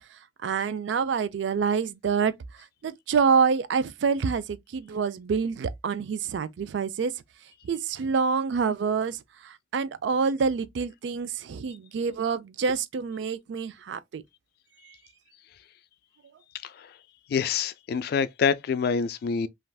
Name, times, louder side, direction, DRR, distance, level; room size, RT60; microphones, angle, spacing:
voice 1, 0.4-2.3 2.8-7.1 7.6-14.2, right 5 dB, 70° right, 0.4 m, -27 dB
voice 2, 17.3-19.5, left 6 dB, 55° left, 0.3 m, -26 dB
3.3 x 2.4 x 2.2 m
head